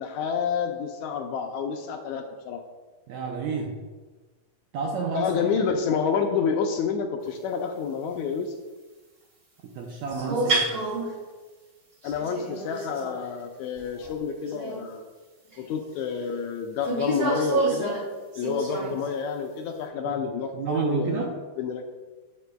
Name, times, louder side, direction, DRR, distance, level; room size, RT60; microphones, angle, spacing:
voice 1, 0.0-2.6 5.1-8.5 12.0-15.0 15.6-18.0 18.3-21.3 21.6-21.8, left 6 dB, 80° left, 4 dB, 1.7 m, -29 dB
voice 2, 3.1-3.8 4.7-5.4 9.8-10.7 18.8-19.0 20.0-20.2 20.5-21.4, right 5 dB, 75° right, 0 dB, 1.7 m, -30 dB
sound 1, 10.1-11.2 12.0-13.3 13.8-14.2 14.4-14.9 15.5-15.6 16.8-19.1, right 2 dB, 40° right, 1.4 m, -29 dB
15.5 x 5.2 x 2.2 m, 1.3 s
omnidirectional pair, 3.8 m